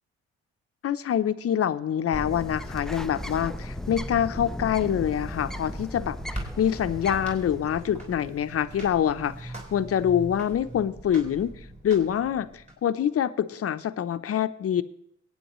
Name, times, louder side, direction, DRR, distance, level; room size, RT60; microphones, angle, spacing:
voice 1, 0.8-11.5 11.8-14.8, left 9 dB, 50° left, 12 dB, 0.8 m, -26 dB
Bird, 2.1-8.1, equal, ahead, 0.5 m, -36 dB
sound 1, 5.3-12.7, right 1 dB, 25° right, 4.6 m, -41 dB
23.0 x 9.2 x 3.1 m, 0.77 s
cardioid pair, 90°, 30 cm